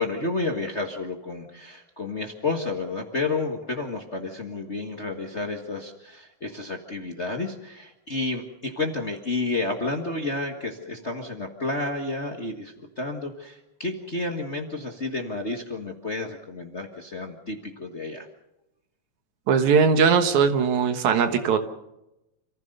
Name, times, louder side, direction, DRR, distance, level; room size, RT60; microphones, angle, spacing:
voice 1, 0.0-18.3, left 3 dB, 30° left, 3 dB, 1.3 m, -31 dB
voice 2, 19.5-21.6, right 6 dB, 75° right, 8 dB, 2.7 m, -20 dB
27.5 x 15.0 x 6.7 m, 0.92 s
omnidirectional pair, 3.3 m